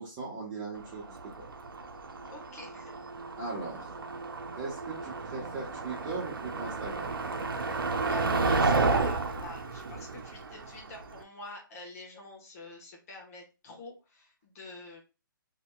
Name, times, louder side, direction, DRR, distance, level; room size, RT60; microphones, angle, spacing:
voice 1, 0.0-1.5 3.4-3.9 4.5-7.1, right 3 dB, 25° right, -6 dB, 1.2 m, -39 dB
Motor vehicle (road), 0.8-11.2, right 3 dB, 85° right, 0.6 m, -32 dB
voice 2, 2.3-2.9 8.1-15.0, left 2 dB, 45° left, 0 dB, 1.2 m, -47 dB
4.1 x 2.9 x 2.3 m, 0.30 s
hypercardioid pair, 145°, 11 cm